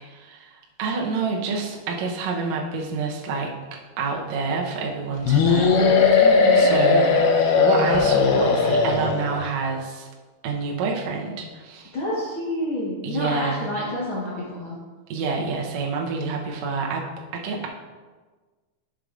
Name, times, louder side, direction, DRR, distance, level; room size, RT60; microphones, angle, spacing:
voice 1, 0.0-7.1 7.5-10.1 10.4-11.9 13.0-13.7 15.1-17.0 17.3-17.7, right 4 dB, 75° right, -1 dB, 1.6 m, -28 dB
sound 1, 5.3-9.4, left 4 dB, 90° left, 2.8 m, -18 dB
voice 2, 6.2-6.7 11.9-14.8, left 1 dB, 65° left, -7 dB, 1.3 m, -28 dB
11.0 x 6.6 x 2.5 m, 1.3 s
omnidirectional pair, 4.4 m